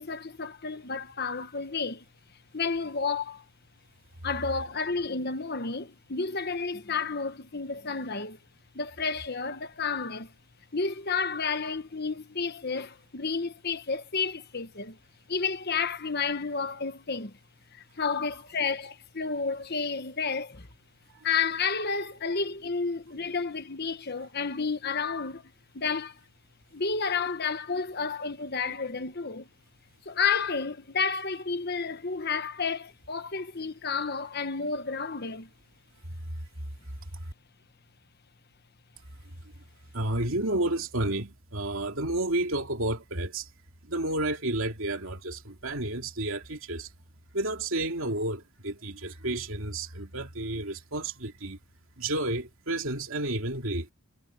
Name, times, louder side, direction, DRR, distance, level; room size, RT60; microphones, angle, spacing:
voice 1, 0.0-2.0 2.5-3.4 4.2-8.4 8.7-10.3 10.7-15.0 15.3-17.4 17.7-20.7 21.2-26.2 26.7-29.5 30.0-35.5, left 5 dB, 45° left, 1.2 m, -31 dB
voice 2, 39.9-43.5 43.8-46.9 47.3-51.6 52.0-53.9, right 1 dB, 65° right, 2.8 m, -31 dB
head